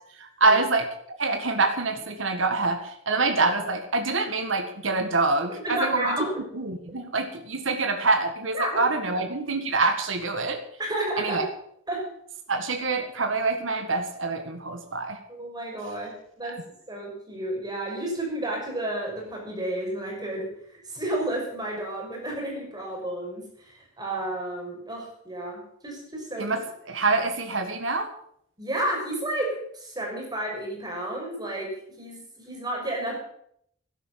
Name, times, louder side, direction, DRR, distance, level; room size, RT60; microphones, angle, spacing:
voice 1, 0.2-0.9 1.2-6.3 6.5-10.6 11.2-11.5 12.5-15.2 16.4-16.6 26.4-26.6 26.9-28.1, right 3 dB, 70° right, 6 dB, 1.9 m, -25 dB
voice 2, 5.5-6.3 8.5-8.8 10.8-11.4 11.9-12.0 15.4-16.1 16.4-16.6 16.9-20.5 20.9-26.5 28.6-31.7 32.0-33.1, right 1 dB, 20° right, -1 dB, 5.8 m, -31 dB
13.5 x 11.0 x 7.5 m, 0.68 s
head